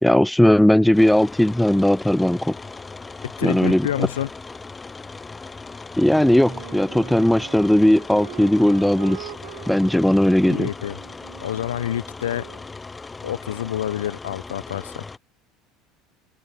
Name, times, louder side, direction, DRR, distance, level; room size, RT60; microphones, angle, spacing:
voice 1, 0.0-2.6 3.4-3.9 6.0-9.3 9.7-10.7, left 1 dB, 5° left, 0.4 m, -17 dB
sound 1, 0.9-15.2, left 3 dB, 20° left, 7.5 m, -38 dB
voice 2, 3.2-4.3 10.5-11.0 11.4-12.4 13.2-15.0, left 11 dB, 85° left, 0.9 m, -28 dB
Wind instrument woodwind instrument, 6.0-12.7, right 22 dB, 75° right, 2.3 m, -42 dB
open air
hypercardioid pair, 75°, 0 cm